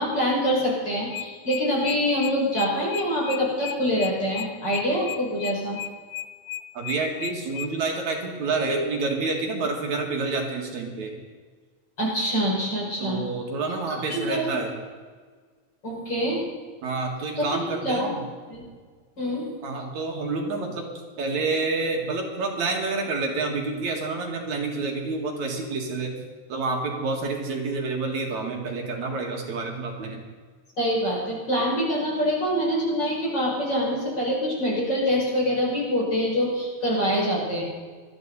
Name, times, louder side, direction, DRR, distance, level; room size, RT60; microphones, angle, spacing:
voice 1, 0.0-5.8 12.0-13.2 14.1-14.4 15.8-16.4 17.4-18.1 18.5-18.6 19.2-19.5 30.8-37.6, equal, 35° left, -5 dB, 6.1 m, -25 dB
sound 1, 1.1-7.7, left 13 dB, 80° left, 1.3 m, -34 dB
voice 2, 6.7-11.1 13.0-14.7 16.8-18.2 19.6-20.8 21.2-26.1 26.5-30.2, right 3 dB, 70° right, 0 dB, 3.3 m, -28 dB
20.0 x 13.5 x 4.1 m, 1.5 s
omnidirectional pair, 3.4 m